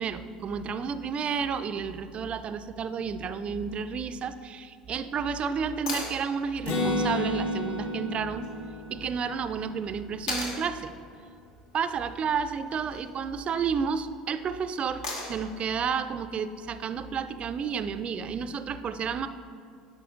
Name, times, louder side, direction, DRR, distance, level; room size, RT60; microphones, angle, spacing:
voice 1, 0.0-8.5 8.9-10.9 11.7-19.3, right 6 dB, 35° right, 12 dB, 0.3 m, -31 dB
sound 1, 5.9-6.2 8.4-8.5 10.3-10.6 12.6-13.0 15.0-15.5 17.6-17.7, left 2 dB, 75° left, 1.3 m, -34 dB
Acoustic guitar, 6.7-10.3, left 1 dB, 50° left, 1.0 m, -31 dB
9.0 x 5.5 x 2.4 m, 2.4 s
hypercardioid pair, 75°, 3 cm